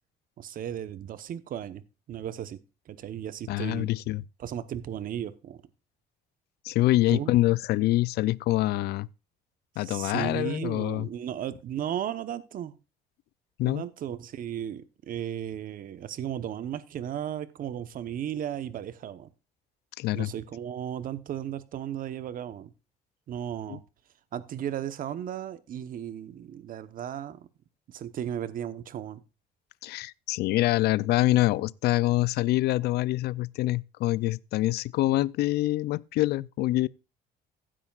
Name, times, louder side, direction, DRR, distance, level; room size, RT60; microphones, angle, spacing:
voice 1, 0.4-1.8 2.1-2.6 2.9-3.9 4.4-5.6 7.1-7.3 9.8-12.7 13.6-19.3 20.1-22.7 23.3-23.8 24.3-27.5 27.9-29.2, right 10 dB, 55° right, 1.0 m, -35 dB
voice 2, 3.5-4.2 6.6-9.1 9.8-11.1 13.6-13.8 20.0-20.3 23.7-23.8 29.8-36.9, left 17 dB, 70° left, 0.4 m, -25 dB
15.0 x 10.0 x 2.4 m
cardioid pair, 110°, 17 cm